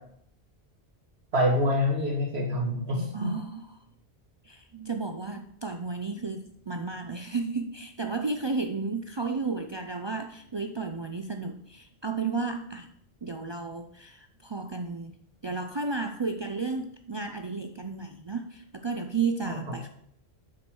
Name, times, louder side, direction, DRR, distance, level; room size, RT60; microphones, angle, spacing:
voice 1, 1.3-3.3 19.4-19.6, left 1 dB, 75° right, -1 dB, 2.0 m, -26 dB
voice 2, 3.1-3.8 4.4-12.9 13.2-15.1 15.4-19.9, right 4 dB, 45° right, 5 dB, 0.3 m, -33 dB
6.1 x 4.5 x 6.2 m, 0.66 s
omnidirectional pair, 1.1 m